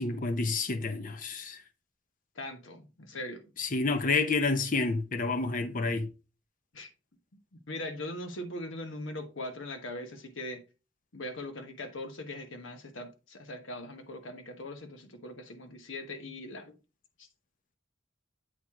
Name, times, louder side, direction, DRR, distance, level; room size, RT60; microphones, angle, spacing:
voice 1, 0.0-1.6 3.6-6.1, left 3 dB, 40° left, 0.7 m, -29 dB
voice 2, 2.3-3.4 6.7-6.9 7.7-10.6 11.1-16.7 17.2-17.3, left 1 dB, 75° left, 1.2 m, -40 dB
8.0 x 4.7 x 3.6 m
head